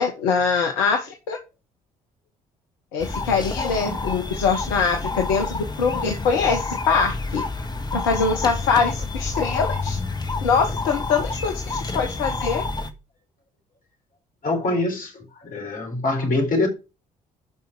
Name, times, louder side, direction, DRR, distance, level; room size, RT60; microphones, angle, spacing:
voice 1, 0.0-1.4 2.9-7.4 7.9-10.0 10.4-12.6, left 5 dB, 65° left, 1.3 m, -23 dB
sound 1, 3.0-12.9, left 3 dB, 20° left, 1.7 m, -29 dB
voice 2, 14.4-15.1 15.4-16.7, left 2 dB, 45° left, 4.1 m, -23 dB
11.5 x 5.7 x 5.0 m
figure-of-eight pair, 45°, 20 cm